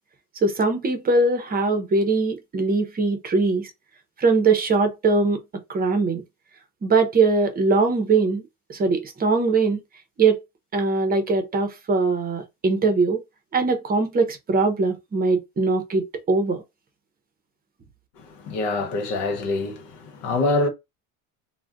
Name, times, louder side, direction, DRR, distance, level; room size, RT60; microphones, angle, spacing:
voice 1, 0.4-3.7 4.2-5.4 5.7-6.2 6.8-9.8 10.2-10.4 10.7-13.2 13.5-16.6, right 3 dB, 25° right, 0.6 m, -21 dB
voice 2, 18.2-20.7, left 2 dB, 85° left, 0.9 m, -25 dB
2.3 x 2.1 x 3.6 m
cardioid pair, 120°, 37 cm